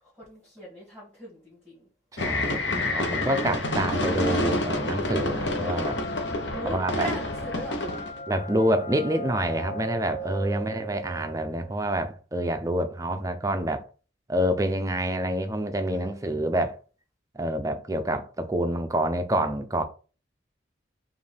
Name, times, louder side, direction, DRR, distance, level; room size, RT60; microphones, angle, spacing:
voice 1, 0.1-1.9 6.5-8.1 10.2-10.8 15.8-16.4, equal, 5° left, 1.6 m, -40 dB
voice 2, 2.1-6.0 6.7-7.1 8.3-13.9 14.3-16.8 17.3-19.8, right 1 dB, 15° right, 0.4 m, -27 dB
sound 1, 2.2-8.2, left 1 dB, 65° left, 1.0 m, -28 dB
sound 2, 4.8-12.1, left 1 dB, 40° left, 0.4 m, -37 dB
5.1 x 2.6 x 3.3 m
head